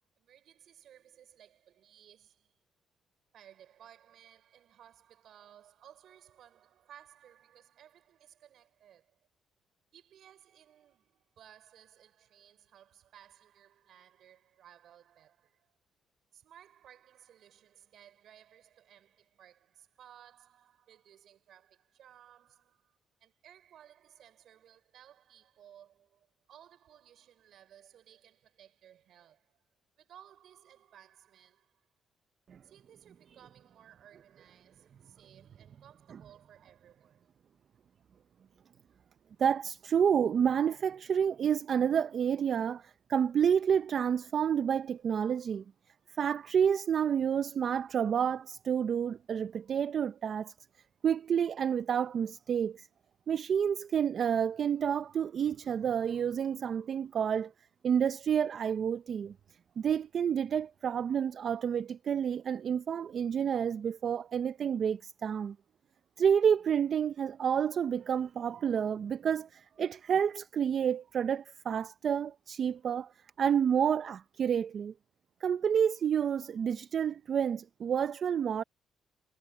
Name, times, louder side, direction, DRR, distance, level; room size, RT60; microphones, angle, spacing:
voice 1, 0.2-2.6 3.3-9.3 9.9-15.7 16.3-29.6 30.0-31.9 32.6-37.3, right 10 dB, 70° right, 5.8 m, -59 dB
voice 2, 39.4-45.6 46.2-50.5 51.0-52.9 53.3-57.5 57.8-59.3 59.8-65.6 66.2-73.1 73.4-74.9 75.4-78.6, right 8 dB, 55° right, 0.6 m, -29 dB
cardioid pair, 90°, 0 cm